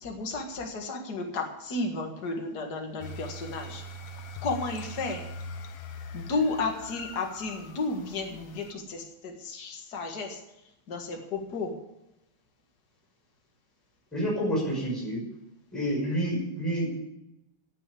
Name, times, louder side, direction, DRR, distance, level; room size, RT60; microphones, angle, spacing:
voice 1, 0.0-3.8 4.4-5.2 6.1-10.4 10.9-11.7, left 3 dB, 50° left, 2 dB, 2.4 m, -33 dB
sound 1, 3.0-8.7, left 1 dB, 70° left, 1.8 m, -42 dB
voice 2, 14.1-15.2 15.7-17.0, equal, ahead, -3 dB, 5.7 m, -29 dB
16.0 x 6.8 x 8.4 m, 0.87 s
omnidirectional pair, 2.4 m